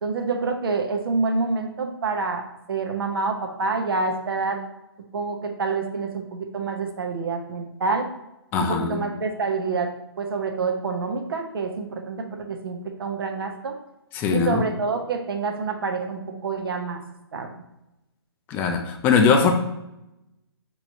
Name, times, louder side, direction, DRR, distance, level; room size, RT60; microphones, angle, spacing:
voice 1, 0.0-4.6 5.1-8.1 8.6-13.7 14.3-17.0 17.3-17.5, right 4 dB, 60° right, 4 dB, 0.8 m, -27 dB
voice 2, 8.5-9.0 14.1-14.6 18.5-19.5, left 5 dB, 15° left, 4 dB, 0.3 m, -20 dB
6.0 x 3.0 x 2.7 m, 0.90 s
figure-of-eight pair, 140°, 14 cm